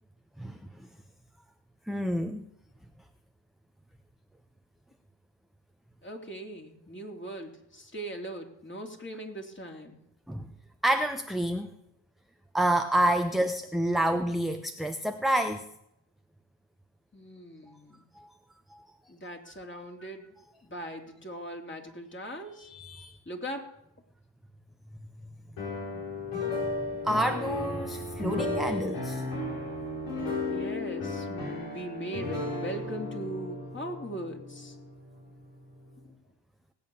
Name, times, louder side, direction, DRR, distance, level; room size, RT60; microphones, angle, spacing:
voice 1, 1.9-2.5 10.3-10.5 10.8-11.7 12.5-15.7 18.2-18.3 18.7-18.8 22.7-23.2 27.0-29.2, right 1 dB, ahead, 6 dB, 0.9 m, -28 dB
voice 2, 6.0-10.0 17.1-18.1 19.1-20.3 20.6-22.7 23.2-23.6 30.5-34.8 36.0-36.1, right 1 dB, 25° left, 3 dB, 3.3 m, -40 dB
sound 1, 25.6-35.5, left 2 dB, 80° left, 5.3 m, -34 dB
18.5 x 8.6 x 7.2 m, 0.81 s
cardioid pair, 70°, 42 cm